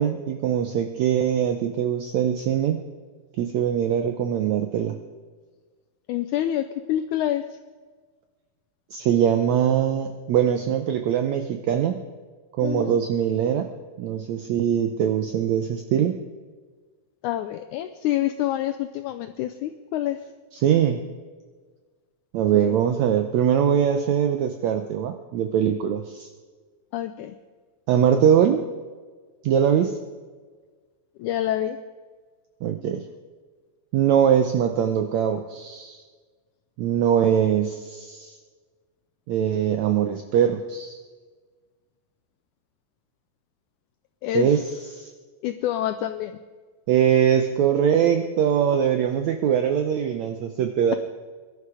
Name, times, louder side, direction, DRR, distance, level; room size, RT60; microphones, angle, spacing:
voice 1, 0.0-2.8 3.4-5.0 8.9-12.0 12.6-13.7 14.0-16.2 20.5-21.0 22.3-26.3 27.9-28.6 29.4-30.0 32.6-33.0 33.9-36.0 36.8-38.3 39.3-41.0 44.3-44.6 44.9-45.1 46.9-50.9, right 9 dB, 80° right, 6 dB, 1.6 m, -22 dB
voice 2, 6.1-7.4 12.6-13.0 17.2-20.2 22.5-22.8 26.9-27.3 31.2-31.8 44.2-44.5 45.4-46.3, left 12 dB, 90° left, 10 dB, 1.7 m, -27 dB
22.5 x 11.5 x 4.9 m, 1.5 s
omnidirectional pair, 4.1 m